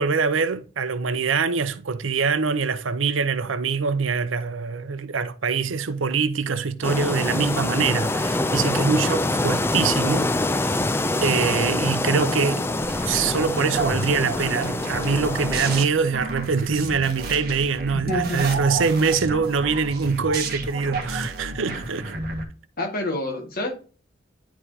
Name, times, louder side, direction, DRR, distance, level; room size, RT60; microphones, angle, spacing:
voice 1, 0.0-10.3 10.5-10.9 11.2-12.7 13.1-22.1, right 5 dB, 85° right, 0.7 m, -24 dB
sound 1, 6.8-15.9, left 2 dB, 10° left, 0.3 m, -25 dB
sound 2, 12.8-22.4, right 3 dB, 50° right, 1.6 m, -31 dB
voice 2, 18.1-18.4 22.8-23.7, left 1 dB, 50° left, 1.9 m, -27 dB
10.0 x 4.9 x 2.8 m
head